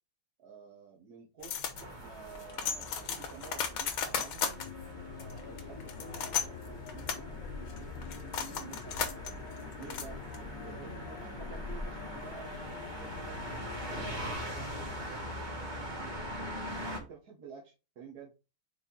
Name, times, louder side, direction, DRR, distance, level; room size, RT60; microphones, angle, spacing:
voice 1, 0.4-4.6 5.2-7.2 7.6-9.4 9.8-10.2 10.5-16.6 17.0-18.3, right 6 dB, 50° right, -3 dB, 1.8 m, -51 dB
sound 1, 1.4-10.6, left 7 dB, 80° left, 1.9 m, -37 dB
sound 2, 1.7-17.0, equal, 25° right, 1.8 m, -42 dB
sound 3, 4.6-15.1, left 7 dB, 60° left, 1.6 m, -46 dB
5.7 x 4.5 x 3.8 m, 0.29 s
omnidirectional pair, 2.3 m